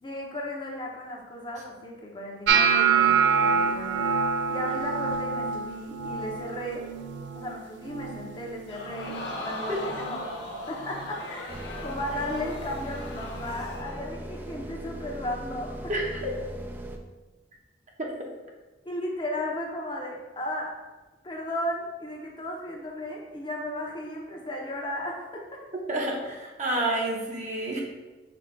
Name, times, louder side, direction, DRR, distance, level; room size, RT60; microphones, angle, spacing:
voice 1, 0.0-4.1 4.5-6.9 7.3-10.2 10.6-16.0 18.8-20.8 21.2-25.6, left 1 dB, 25° left, -1 dB, 0.7 m, -35 dB
sound 1, 2.5-8.6 8.8-9.3 9.7-10.2 10.9-11.1 12.8-12.9, right 6 dB, 90° right, 0.4 m, -26 dB
Crowd, 8.7-14.1 14.6-14.7, left 2 dB, 85° left, 0.8 m, -38 dB
sound 2, 11.5-17.0, right 1 dB, 10° right, 0.3 m, -39 dB
voice 2, 15.9-16.2 18.0-18.1 25.9-27.8, right 1 dB, 45° right, -1 dB, 0.8 m, -29 dB
5.2 x 2.3 x 4.4 m, 1.2 s
head